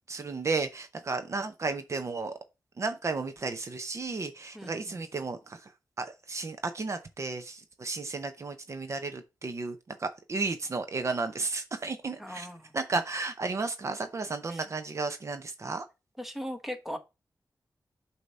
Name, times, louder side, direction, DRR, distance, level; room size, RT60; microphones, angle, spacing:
voice 1, 0.1-2.4 2.8-5.7 6.0-12.5 12.7-15.8, right 3 dB, 45° right, 0.7 m, -33 dB
voice 2, 4.5-5.0 12.2-12.7 14.5-14.6 16.2-17.0, equal, 5° right, 0.9 m, -39 dB
8.0 x 2.8 x 5.4 m
wide cardioid pair, 120°, 7 cm